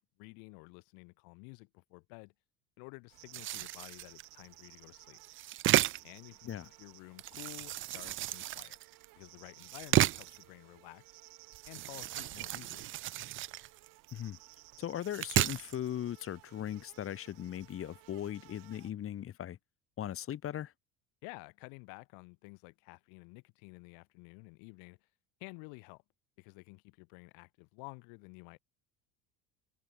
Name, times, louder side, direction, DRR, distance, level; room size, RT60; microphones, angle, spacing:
voice 1, 0.0-2.3 2.8-5.2 6.0-8.8 9.2-11.2 11.7-12.9 21.2-25.0 25.4-26.0 26.4-28.6, left 36 dB, 75° left, 4.5 m, -52 dB
sound 1, 3.1-18.9, right 23 dB, 65° right, 5.9 m, -58 dB
sound 2, 3.3-4.2 5.2-6.2 7.2-9.1 9.6-10.4 11.5-14.1 14.5-14.6 15.0-15.8, right 15 dB, 35° right, 0.5 m, -33 dB
voice 2, 14.8-19.6 20.0-20.7, left 11 dB, 40° left, 3.5 m, -38 dB
cardioid pair, 135°, 34 cm